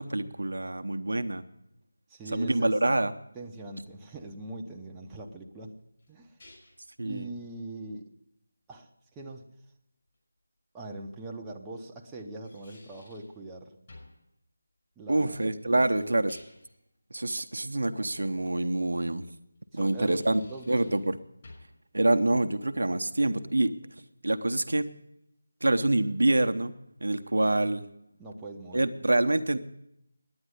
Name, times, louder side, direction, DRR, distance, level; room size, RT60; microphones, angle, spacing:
voice 1, 0.0-1.4 2.3-3.1 7.0-7.3 15.1-16.4 17.1-19.2 19.7-20.4 20.7-21.2 21.9-23.8 24.2-24.9 25.6-27.8 28.7-29.6, right 2 dB, 75° right, 8 dB, 0.8 m, -26 dB
voice 2, 2.1-2.8 3.3-5.7 6.1-6.4 7.0-8.1 8.7-9.4 10.7-13.8 15.0-16.1 19.7-20.2 20.5-21.0 28.2-28.8, right 2 dB, 10° right, -1 dB, 0.8 m, -42 dB
sound 1, 5.8-6.9 10.1-10.2 12.2-13.4 13.9-14.2 16.0-16.8 19.6-21.1 21.4-21.8, left 2 dB, 40° left, 5.8 m, -54 dB
9.9 x 9.6 x 9.5 m, 0.82 s
figure-of-eight pair, 165°, 0 cm